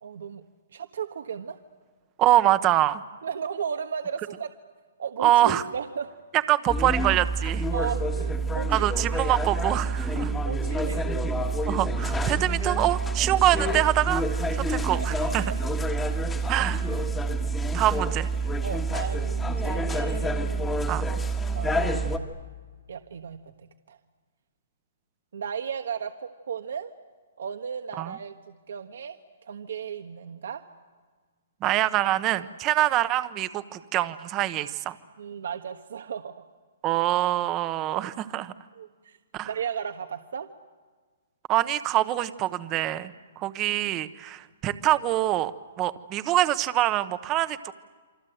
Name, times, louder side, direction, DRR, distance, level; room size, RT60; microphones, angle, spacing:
voice 1, 0.0-0.4 0.7-1.6 3.2-4.5 5.0-6.1 7.7-8.9 10.4-11.1 14.9-15.6 16.6-16.7 18.6-20.4 21.5-22.2 22.9-24.0 25.3-26.9 27.4-29.2 29.4-30.6 35.2-36.4 38.7-39.2 39.5-40.5, right 7 dB, 75° right, 7 dB, 1.3 m, -35 dB
voice 2, 2.2-3.0 5.2-5.6 6.5-7.7 8.7-10.3 11.7-14.2 14.5-15.4 16.5-16.8 17.7-18.3 20.9-21.0 28.0-28.1 31.6-35.0 36.8-38.5 39.3-39.5 41.5-45.5 45.8-47.6, right 14 dB, 20° right, 13 dB, 0.9 m, -24 dB
sound 1, 6.7-22.2, right 2 dB, 10° left, 1.6 m, -27 dB
28.5 x 25.0 x 7.9 m, 1.5 s
hypercardioid pair, 165°, 0 cm